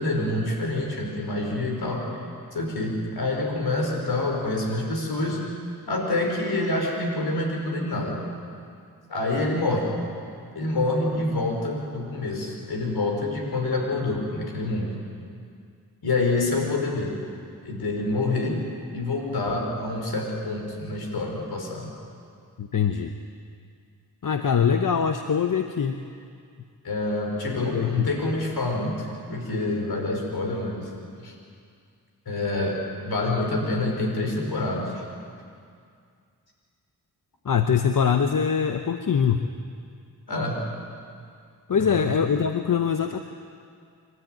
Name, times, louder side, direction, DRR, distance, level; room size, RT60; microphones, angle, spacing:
voice 1, 0.0-2.2 2.5-5.4 5.9-8.2 9.1-9.9 10.5-14.9 16.0-17.1 17.6-18.6 18.9-21.9 26.8-31.0 31.2-31.3 32.2-32.8 33.0-35.0 40.3-40.6 41.8-42.1, left 2 dB, 75° left, 1 dB, 4.9 m, -27 dB
voice 2, 22.6-23.1 24.2-26.0 27.7-28.1 37.4-39.5 41.7-43.2, left 7 dB, 55° left, 7 dB, 1.0 m, -23 dB
27.0 x 12.5 x 9.1 m, 2.3 s
cardioid pair, 45°, 38 cm